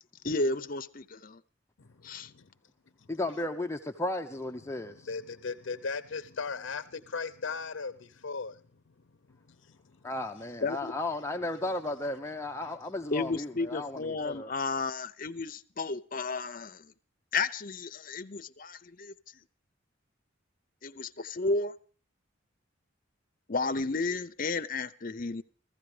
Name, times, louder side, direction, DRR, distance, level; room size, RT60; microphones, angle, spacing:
voice 1, 0.2-1.4 2.0-2.3 10.6-11.0 13.1-16.9 17.3-19.1 20.8-21.7 23.5-25.4, left 3 dB, 45° left, 0.8 m, -32 dB
voice 2, 1.8-2.5 3.0-3.1 4.8-8.6 9.3-10.0 12.6-12.7, left 4 dB, 80° left, 0.7 m, -38 dB
voice 3, 3.1-5.1 10.0-14.5, left 2 dB, 15° left, 0.7 m, -34 dB
15.5 x 15.0 x 5.0 m
head